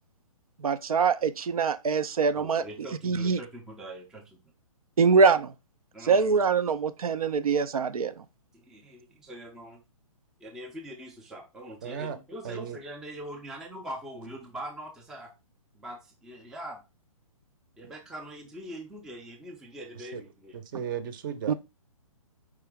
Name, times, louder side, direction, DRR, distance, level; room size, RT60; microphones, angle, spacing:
voice 1, 0.6-2.6 3.0-3.4 5.0-5.5 6.1-8.1 21.5-21.6, right 5 dB, 90° right, 0.5 m, -23 dB
voice 2, 2.4-4.4 5.9-6.3 8.5-9.8 10.4-15.3 15.7-16.8 17.8-20.6, right 1 dB, 5° right, 0.4 m, -42 dB
voice 3, 11.8-12.2 12.4-12.8 19.9-20.2 20.5-21.5, right 8 dB, 35° right, 0.7 m, -35 dB
4.7 x 2.9 x 3.4 m
hypercardioid pair, 145°, 18 cm